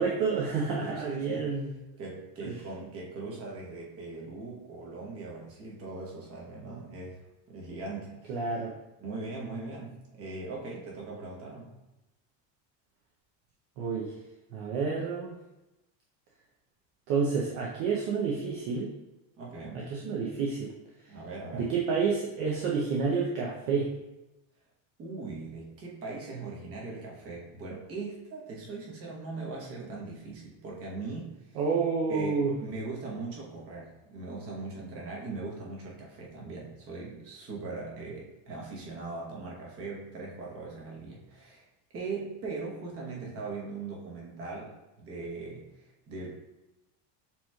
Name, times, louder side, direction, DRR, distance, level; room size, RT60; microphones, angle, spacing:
voice 1, 0.0-1.7 2.4-2.6 8.3-8.7 13.8-14.1 14.5-15.4 17.1-18.9 19.9-20.7 21.5-23.9 31.6-32.6, right 5 dB, 45° right, -3 dB, 0.6 m, -29 dB
voice 2, 0.8-1.5 2.0-7.2 7.5-8.3 9.0-11.7 19.4-19.9 21.1-21.7 25.0-31.6 32.1-41.6 41.9-46.3, right 3 dB, 30° right, -3 dB, 1.0 m, -40 dB
7.0 x 3.0 x 2.3 m, 1.0 s
cardioid pair, 165°, 49 cm